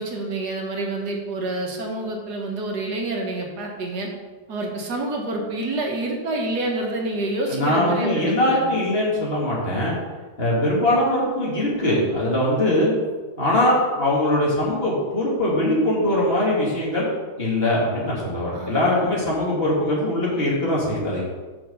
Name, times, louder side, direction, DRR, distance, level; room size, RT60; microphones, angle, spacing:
voice 1, 0.0-4.1 4.5-8.7 18.5-19.1, right 2 dB, 85° right, 1 dB, 1.8 m, -28 dB
voice 2, 7.5-10.0 10.4-12.9 13.4-17.1 17.4-21.2, left 1 dB, 40° left, -5 dB, 2.2 m, -21 dB
5.9 x 5.0 x 6.5 m, 1.3 s
omnidirectional pair, 1.7 m